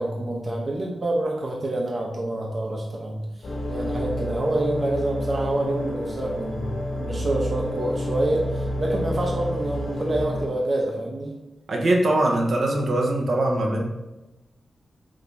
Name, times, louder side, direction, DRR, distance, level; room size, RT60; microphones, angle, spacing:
voice 1, 0.0-11.3, right 1 dB, 40° right, -1 dB, 1.2 m, -27 dB
sound 1, 3.4-10.5, left 1 dB, 55° left, 2.3 m, -29 dB
voice 2, 11.7-13.8, right 1 dB, 60° right, 1 dB, 1.5 m, -22 dB
8.3 x 6.4 x 3.0 m, 1.0 s
wide cardioid pair, 105°, 0 cm